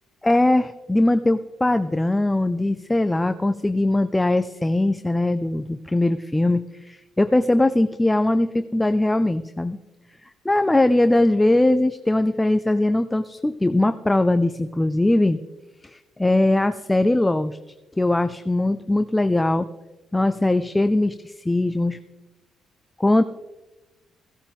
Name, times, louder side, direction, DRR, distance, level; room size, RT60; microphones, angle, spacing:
voice 1, 0.2-9.8 10.4-15.4 15.8-17.6 18.0-19.7 20.1-22.0 23.0-23.2, left 1 dB, 15° left, 11 dB, 0.5 m, -20 dB
15.0 x 11.5 x 3.5 m, 1.1 s
cardioid pair, 75°, 0 cm